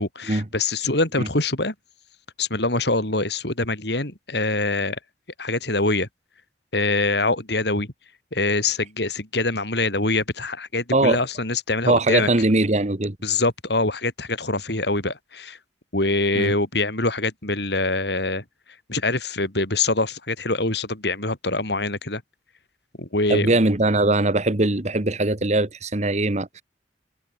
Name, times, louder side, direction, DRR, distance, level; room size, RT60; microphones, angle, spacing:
voice 1, 0.0-1.7 2.4-5.0 5.4-6.1 6.7-7.9 8.3-12.3 13.2-15.6 15.9-18.4 18.9-22.2 23.0-23.6, left 2 dB, 65° left, 4.2 m, -24 dB
voice 2, 11.9-13.2 16.3-16.5 23.3-26.6, right 2 dB, 40° right, 1.5 m, -21 dB
head